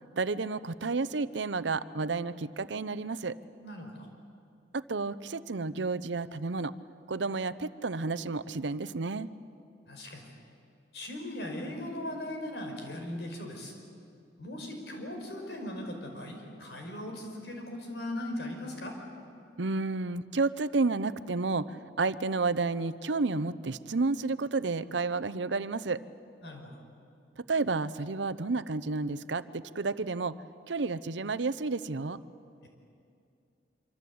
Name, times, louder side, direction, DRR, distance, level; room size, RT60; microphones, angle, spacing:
voice 1, 0.1-3.4 4.7-6.7 7.1-9.3 19.6-26.0 27.4-30.3 30.7-32.2, right 3 dB, 85° right, 15 dB, 0.8 m, -31 dB
voice 2, 3.6-4.1 9.9-10.3 10.9-13.7 14.4-18.9 26.4-26.8 32.6-32.7, left 1 dB, 70° left, 3 dB, 5.1 m, -39 dB
25.5 x 25.0 x 8.7 m, 2.6 s
head